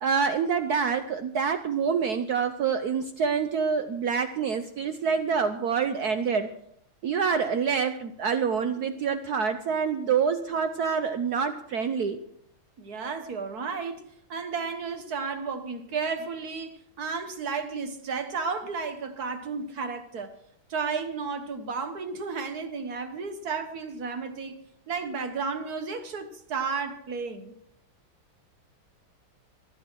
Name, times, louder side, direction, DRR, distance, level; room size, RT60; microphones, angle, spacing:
voice 1, 0.0-6.5 7.0-12.2, right 6 dB, 70° right, 0.9 m, -26 dB
voice 2, 12.8-14.0 14.3-20.3 20.7-24.6 24.9-27.5, right 5 dB, 50° right, 1.5 m, -33 dB
24.0 x 9.7 x 4.6 m
omnidirectional pair, 2.4 m